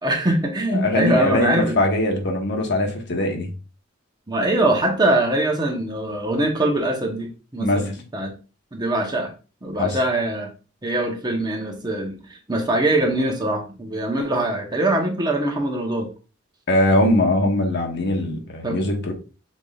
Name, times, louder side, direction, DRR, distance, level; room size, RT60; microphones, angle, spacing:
voice 1, 0.0-1.8 4.3-8.3 8.7-9.3 9.6-10.5 10.8-16.1 18.6-18.9, right 1 dB, 20° right, 2 dB, 0.9 m, -23 dB
voice 2, 0.7-3.5 7.6-7.9 9.8-10.0 16.7-19.1, left 1 dB, 60° left, 3 dB, 1.1 m, -21 dB
6.2 x 3.6 x 2.3 m, 0.34 s
head